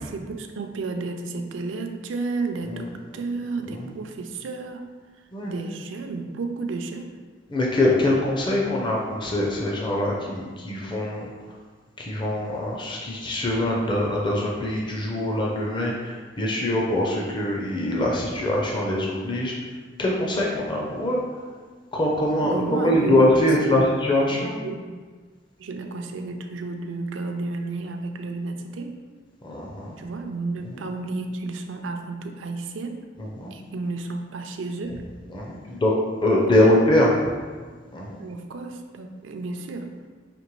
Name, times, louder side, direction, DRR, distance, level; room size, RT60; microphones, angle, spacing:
voice 1, 0.0-4.9 5.2-7.2 22.4-24.0 24.3-25.1 25.6-29.0 30.0-33.1 33.5-35.0 38.2-39.9, right 3 dB, 75° right, 5 dB, 0.4 m, -32 dB
voice 2, 7.5-11.3 12.0-19.5 20.0-21.4 21.9-24.6 29.4-30.0 30.7-30.9 33.2-33.5 35.3-35.9 36.2-37.2 37.9-38.2, left 1 dB, 25° left, -2 dB, 0.5 m, -23 dB
5.1 x 2.9 x 3.0 m, 1.5 s
head